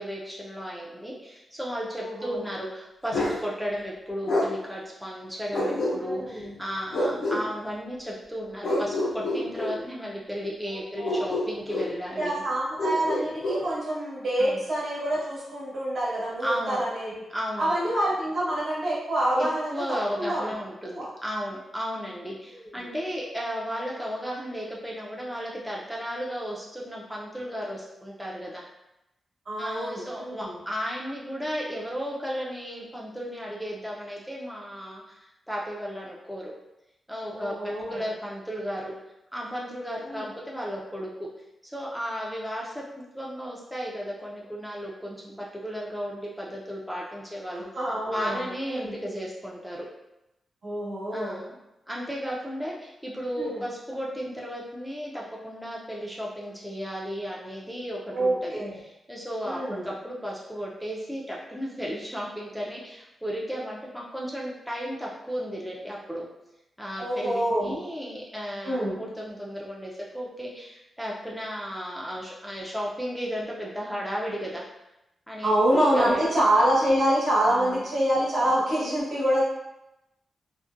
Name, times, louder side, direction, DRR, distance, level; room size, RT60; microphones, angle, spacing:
voice 1, 0.0-12.4 14.4-14.6 16.4-16.8 17.3-17.9 19.3-28.6 29.6-36.5 37.1-37.6 37.9-38.9 39.3-41.3 41.6-47.7 48.1-49.9 51.1-51.6 51.9-58.5 58.8-66.3 66.8-74.6 75.3-76.3 77.5-77.8, equal, ahead, -4 dB, 0.4 m, -34 dB
voice 2, 2.0-2.4 6.0-6.5 10.7-11.2 12.1-17.2 17.6-20.5 21.0-21.1 22.5-22.6 29.5-30.6 37.3-38.0 40.0-40.3 47.5-48.4 48.7-48.9 50.6-51.4 53.4-53.6 58.1-58.8 59.4-59.9 67.0-67.8 68.6-69.0 75.4-79.4, right 1 dB, 60° right, -7 dB, 1.0 m, -26 dB
Bark, 3.1-3.4 4.3-4.5 5.5-6.3 6.9-7.4 8.6-9.8 11.0-11.9 12.8-13.6, left 1 dB, 85° left, 0.6 m, -27 dB
2.5 x 2.1 x 2.4 m, 0.91 s
cardioid pair, 100°, 0 cm